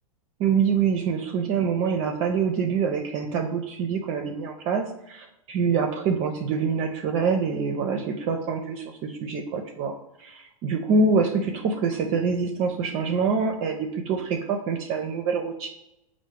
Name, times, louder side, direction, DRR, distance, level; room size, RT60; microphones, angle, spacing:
voice 1, 0.4-15.7, right 5 dB, 40° right, 3 dB, 0.5 m, -25 dB
4.6 x 2.1 x 4.6 m, 0.85 s
hypercardioid pair, 105°, 18 cm